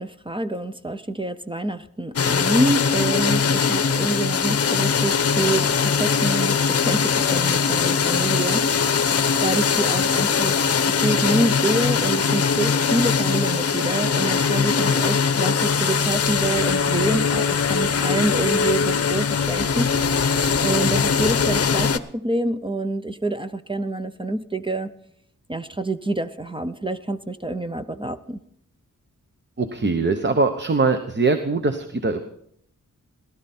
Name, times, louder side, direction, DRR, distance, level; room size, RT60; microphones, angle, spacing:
voice 1, 0.0-19.9 20.6-24.9 25.5-28.4, right 2 dB, 15° right, 11 dB, 0.6 m, -27 dB
sound 1, 2.2-22.0, left 6 dB, 50° left, 0.7 m, -21 dB
voice 2, 29.6-32.2, right 3 dB, 35° right, 7 dB, 0.9 m, -22 dB
17.0 x 12.5 x 4.3 m, 0.68 s
wide cardioid pair, 125°, 31 cm